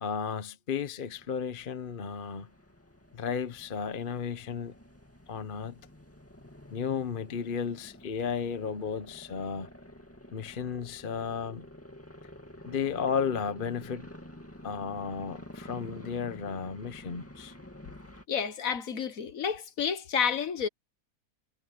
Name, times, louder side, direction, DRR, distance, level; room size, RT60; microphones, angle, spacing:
voice 1, 0.0-2.5 3.1-4.7 5.3-5.8 6.7-9.7 10.3-11.7 12.7-14.1 14.6-17.5, left 6 dB, 40° left, 1.0 m, -34 dB
sound 1, 1.1-18.2, left 1 dB, 10° left, 2.1 m, -49 dB
voice 2, 18.3-20.7, left 7 dB, 65° left, 1.6 m, -30 dB
omnidirectional pair, 1.6 m